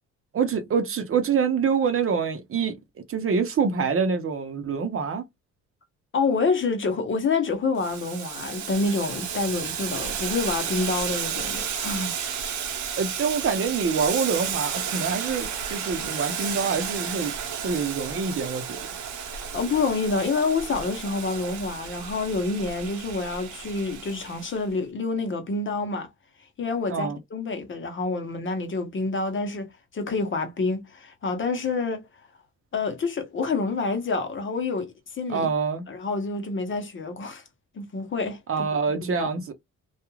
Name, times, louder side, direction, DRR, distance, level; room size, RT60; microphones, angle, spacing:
voice 1, 0.3-2.8 3.1-5.2 13.0-17.3 17.6-18.8 26.9-27.2 35.3-35.8 38.5-39.5, right 5 dB, 45° right, 0.8 m, -26 dB
voice 2, 6.1-12.2 19.3-26.1 26.6-32.1 32.7-35.5 35.9-37.4 37.7-38.4 39.0-39.3, left 4 dB, 40° left, 0.9 m, -27 dB
Boiling, 7.8-24.6, right 7 dB, 75° right, 0.9 m, -32 dB
2.4 x 2.3 x 3.0 m
cardioid pair, 90°, 30 cm